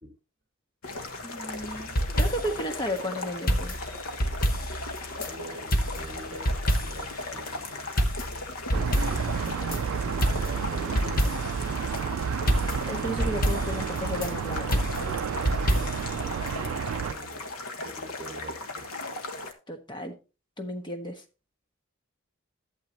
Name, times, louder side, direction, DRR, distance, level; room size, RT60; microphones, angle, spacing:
sound 1, 0.8-19.5, left 2 dB, 75° left, 1.4 m, -37 dB
voice 1, 1.2-3.7 8.7-8.9 9.6-9.8 12.9-14.8 19.7-20.1 20.6-21.2, equal, 20° left, 5 dB, 1.3 m, -34 dB
sound 2, 1.6-2.7 3.5-5.3 5.7-7.2 7.5-7.6 8.0-9.8 10.2-11.7 12.0-12.1 12.5-14.3 14.7-16.2 16.5-16.6, equal, 45° left, 1.2 m, -28 dB
voice 2, 5.1-7.9 10.0-11.4 16.1-17.5 17.8-18.9, right 1 dB, 35° right, 3 dB, 1.8 m, -44 dB
sound 3, 8.7-17.1, right 7 dB, 65° right, 0.4 m, -31 dB
11.5 x 7.7 x 2.9 m, 0.32 s
head